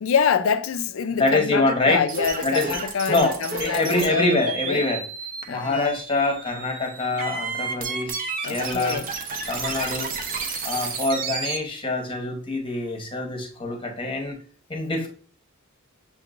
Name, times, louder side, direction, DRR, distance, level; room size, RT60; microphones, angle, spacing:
voice 1, 0.0-4.9 5.5-6.0 8.4-9.1, left 6 dB, 65° left, 0.4 m, -25 dB
voice 2, 1.2-2.0 2.4-2.8 3.1-5.0 5.5-9.0 9.5-10.1 10.6-14.4 14.7-15.1, left 2 dB, 25° left, 0.8 m, -25 dB
sound 1, 2.1-11.6, right 4 dB, 40° right, 0.6 m, -32 dB
6.7 x 3.0 x 2.4 m
head